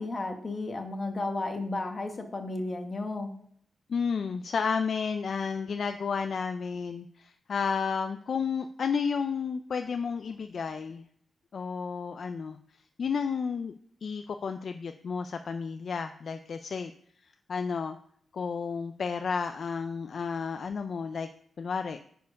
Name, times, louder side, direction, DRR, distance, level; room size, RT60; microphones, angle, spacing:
voice 1, 0.0-3.3, left 2 dB, 25° left, 5 dB, 1.1 m, -33 dB
voice 2, 3.9-11.0 11.5-12.6 13.0-13.7 14.0-16.9 17.5-18.0 18.3-21.3 21.6-22.0, left 5 dB, 50° left, 8 dB, 0.4 m, -32 dB
9.5 x 4.5 x 5.3 m, 0.64 s
wide cardioid pair, 170°, 0 cm